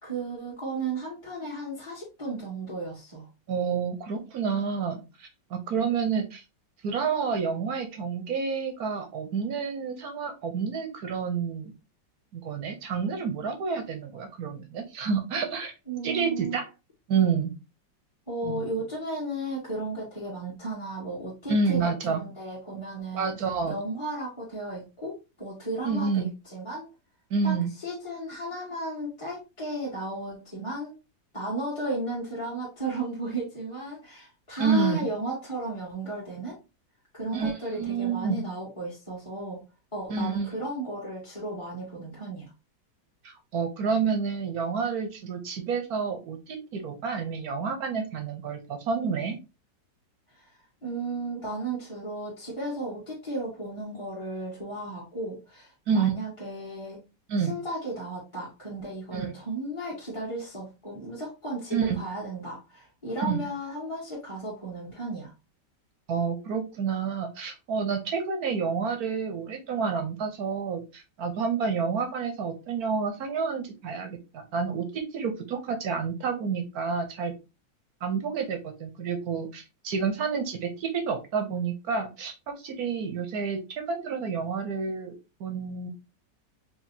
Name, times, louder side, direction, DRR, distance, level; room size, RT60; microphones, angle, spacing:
voice 1, 0.0-3.3 15.9-16.6 18.3-23.3 23.7-26.9 27.4-30.9 31.3-36.6 37.1-39.6 39.9-42.5 50.3-50.5 50.8-57.0 57.4-65.3, right 2 dB, 15° left, -6 dB, 1.8 m, -34 dB
voice 2, 3.5-6.4 6.8-11.7 12.3-15.7 16.0-16.6 17.1-17.5 18.4-18.7 21.5-22.2 23.1-23.8 25.8-26.3 27.3-27.7 34.6-35.1 37.3-38.4 40.1-40.5 43.2-49.4 55.9-56.1 57.3-57.5 59.1-59.3 61.7-62.0 63.2-63.5 66.1-77.3 78.0-85.1 85.4-85.9, right 5 dB, 60° right, 6 dB, 1.2 m, -29 dB
4.7 x 3.2 x 2.7 m, 0.27 s
omnidirectional pair, 2.0 m